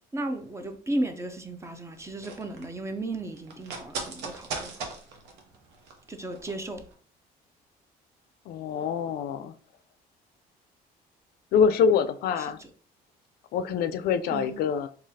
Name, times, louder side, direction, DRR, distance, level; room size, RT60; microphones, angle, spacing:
voice 1, 0.1-4.8 6.1-6.8 12.4-12.7 14.3-14.6, right 1 dB, 15° right, 0.5 m, -34 dB
sound 1, 1.9-6.6 6.9-7.0, right 4 dB, 90° right, 0.8 m, -39 dB
voice 2, 8.5-9.5 11.5-12.6 13.5-14.9, left 6 dB, 70° left, 0.4 m, -25 dB
3.9 x 2.8 x 2.7 m
cardioid pair, 110°, 17 cm